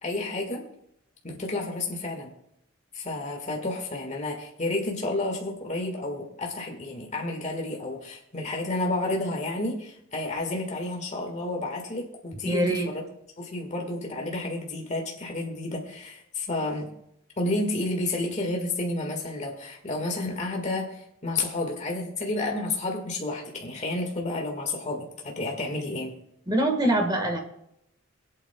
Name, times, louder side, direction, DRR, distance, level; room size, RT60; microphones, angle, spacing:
voice 1, 0.0-0.7 1.2-2.3 2.9-13.0 13.4-16.9 17.4-26.1, left 2 dB, 35° left, 1 dB, 1.8 m, -31 dB
voice 2, 12.4-12.9 26.5-27.4, right 1 dB, 20° right, 3 dB, 1.6 m, -24 dB
23.5 x 8.7 x 2.3 m, 0.77 s
head